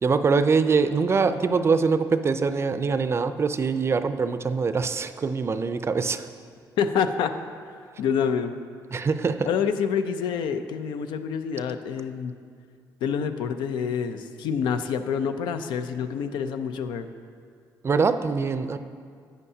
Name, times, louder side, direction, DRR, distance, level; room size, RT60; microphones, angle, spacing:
voice 1, 0.0-6.3 8.9-9.5 17.8-18.8, right 5 dB, 35° right, 11 dB, 0.4 m, -23 dB
voice 2, 6.8-7.3 8.0-8.5 9.4-12.3 13.0-17.1, left 7 dB, 85° left, 8 dB, 0.5 m, -27 dB
11.0 x 8.9 x 2.8 m, 2.2 s
cardioid pair, 80°, 8 cm